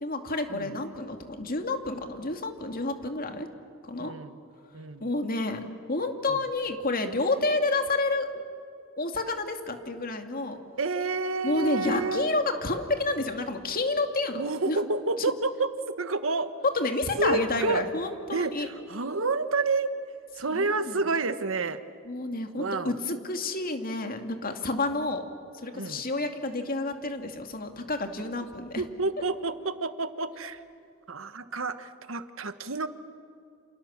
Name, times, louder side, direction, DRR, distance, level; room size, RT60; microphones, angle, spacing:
voice 1, 0.0-3.5 3.8-4.1 5.0-5.6 5.9-8.4 9.0-10.6 11.4-14.8 16.7-18.7 20.5-21.0 22.1-25.2 25.5-28.8, left 2 dB, 45° left, 6 dB, 2.4 m, -29 dB
voice 2, 4.0-4.4 4.7-5.0 6.3-6.4 10.8-12.3 14.3-16.5 17.2-17.8 18.3-19.9 20.4-21.8 22.6-22.9 25.7-26.0 28.8-30.6 31.1-32.9, right 3 dB, 70° right, 11 dB, 1.3 m, -29 dB
29.5 x 27.5 x 7.3 m, 2.5 s
head